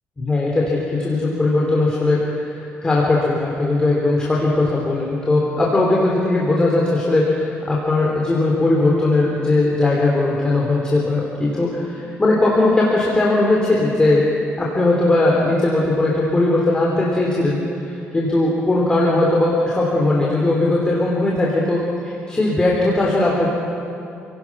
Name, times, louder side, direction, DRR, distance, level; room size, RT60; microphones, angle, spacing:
voice 1, 0.2-2.2 2.4-11.7 12.2-14.3 14.6-17.6 17.9-23.5, left 2 dB, 20° left, -4 dB, 3.2 m, -18 dB
29.5 x 17.0 x 6.0 m, 2.6 s
cardioid pair, 125°, 5 cm